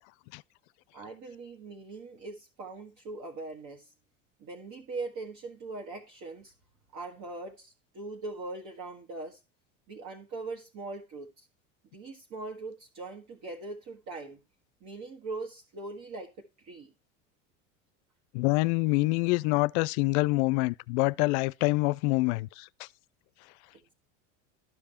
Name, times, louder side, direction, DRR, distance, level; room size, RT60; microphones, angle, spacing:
voice 1, 0.9-3.9 4.4-6.5 6.9-9.4 9.9-11.5 11.9-14.4 14.8-16.3 16.6-16.9, right 3 dB, 50° right, 1.7 m, -41 dB
voice 2, 18.3-22.9, left 23 dB, 60° left, 0.5 m, -26 dB
12.5 x 5.3 x 4.3 m
hypercardioid pair, 85°, 38 cm